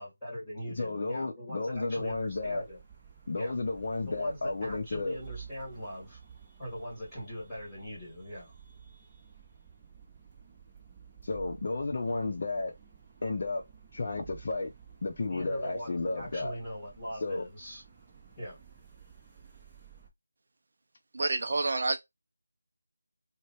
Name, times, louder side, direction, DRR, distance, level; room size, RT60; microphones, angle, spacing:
voice 1, 0.0-2.8 3.3-3.6 4.1-6.2 6.6-8.5 15.3-17.8 18.4-18.6, equal, 5° left, 2.8 m, -41 dB
voice 2, 0.7-2.6 3.3-5.2 11.2-12.7 13.2-13.6 13.9-14.7 15.0-16.6 17.2-17.4, left 3 dB, 40° left, 0.6 m, -32 dB
sound 1, 1.7-20.1, right 7 dB, 15° right, 0.7 m, -53 dB
voice 3, 21.1-22.0, right 3 dB, 45° right, 0.4 m, -28 dB
3.9 x 2.2 x 3.4 m
figure-of-eight pair, 170°, 0 cm